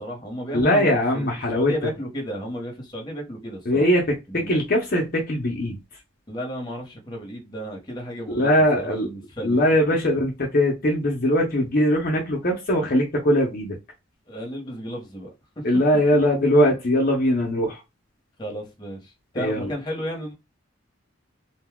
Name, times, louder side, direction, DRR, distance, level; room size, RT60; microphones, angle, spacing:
voice 1, 0.0-1.3 1.5-3.9 4.3-4.5 6.3-8.5 8.7-9.6 14.3-15.3 15.6-15.7 18.4-20.3, equal, 20° left, 1.0 m, -33 dB
voice 2, 0.5-1.7 3.7-5.8 8.3-9.1 9.4-13.8 15.6-17.8 19.4-19.7, equal, 50° left, 0.7 m, -21 dB
2.6 x 2.2 x 3.5 m
head